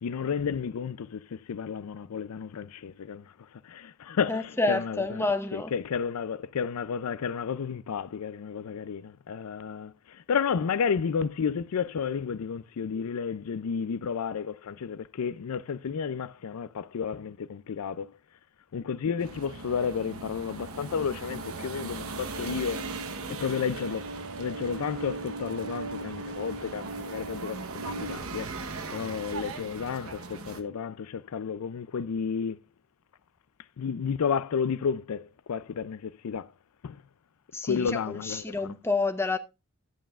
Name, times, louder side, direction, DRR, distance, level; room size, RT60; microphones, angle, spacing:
voice 1, 0.0-5.2 5.5-18.1 18.7-22.8 23.3-24.1 24.4-28.6 28.9-32.6 33.8-36.5 36.8-37.0 37.6-38.8, left 6 dB, 85° left, 0.4 m, -32 dB
voice 2, 4.3-5.7 37.5-39.4, left 3 dB, 10° left, 0.8 m, -29 dB
sound 1, 19.2-30.6, right 3 dB, 70° right, 1.0 m, -40 dB
sound 2, 21.2-28.2, right 3 dB, 55° right, 0.7 m, -40 dB
12.5 x 9.1 x 2.4 m
head